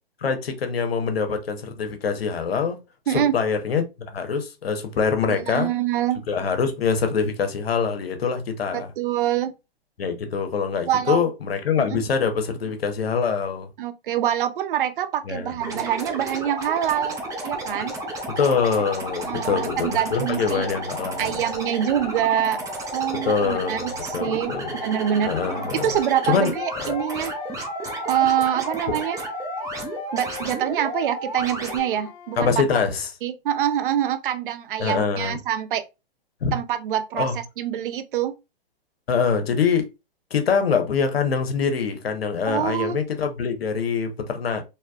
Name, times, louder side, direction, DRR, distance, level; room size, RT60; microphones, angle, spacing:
voice 1, 0.2-2.8 3.1-5.7 6.3-8.9 10.0-13.7 15.3-15.8 18.3-21.4 23.1-24.7 25.3-26.0 26.2-26.5 26.8-26.9 32.4-33.1 34.8-35.4 36.4-36.5 37.2-37.4 39.1-39.8 40.3-44.6, left 6 dB, 75° left, 0.9 m, -24 dB
voice 2, 5.3-6.2 8.7-9.5 10.9-11.2 11.9-12.0 13.8-17.2 17.4-17.9 19.2-20.7 21.2-22.6 22.9-24.5 24.8-25.3 25.8-27.3 28.0-29.2 30.1-32.5 33.2-35.8 36.5-37.3 37.6-38.3 42.5-43.0, right 10 dB, 60° right, 0.6 m, -25 dB
sound 1, 15.6-31.8, right 1 dB, 10° right, 0.5 m, -32 dB
Wind instrument woodwind instrument, 24.6-28.3 28.6-32.5, left 7 dB, 30° left, 0.7 m, -40 dB
3.3 x 2.6 x 2.3 m
hypercardioid pair, 115°, 30 cm